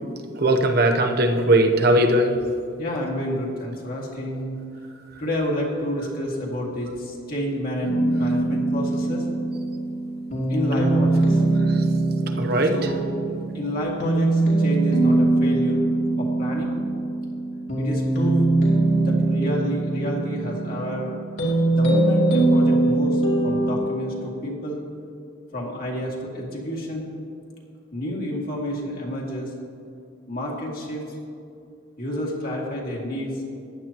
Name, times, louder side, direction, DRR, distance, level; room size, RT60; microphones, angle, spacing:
voice 1, 0.4-2.4 11.7-11.8 12.4-12.7, right 1 dB, 55° right, 5 dB, 1.0 m, -19 dB
voice 2, 2.8-4.6 5.2-9.3 10.5-11.4 12.7-13.1 13.5-15.8 16.2-16.8 17.8-18.4 19.0-21.1 21.7-24.8 25.5-27.1 27.9-29.5 30.3-31.0 32.0-33.3, equal, 50° left, -3 dB, 2.3 m, -29 dB
sound 1, 7.8-23.8, right 2 dB, 65° left, 2.7 m, -22 dB
15.0 x 11.0 x 3.0 m, 2.5 s
head